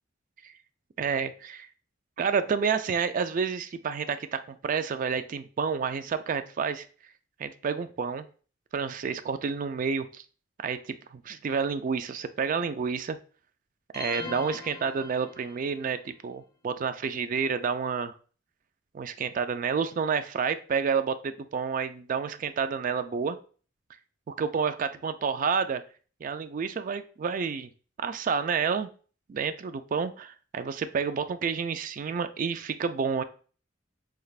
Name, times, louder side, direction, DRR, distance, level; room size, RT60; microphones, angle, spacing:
voice 1, 1.0-1.7 2.2-6.9 7.4-8.3 8.7-10.2 10.6-13.2 13.9-18.1 18.9-23.4 24.3-25.8 26.2-27.7 28.0-28.9 29.3-33.2, right 6 dB, 45° right, 11 dB, 0.3 m, -29 dB
sound 1, 13.9-15.8, left 3 dB, 20° left, 0.5 m, -40 dB
4.8 x 3.3 x 2.3 m, 0.39 s
head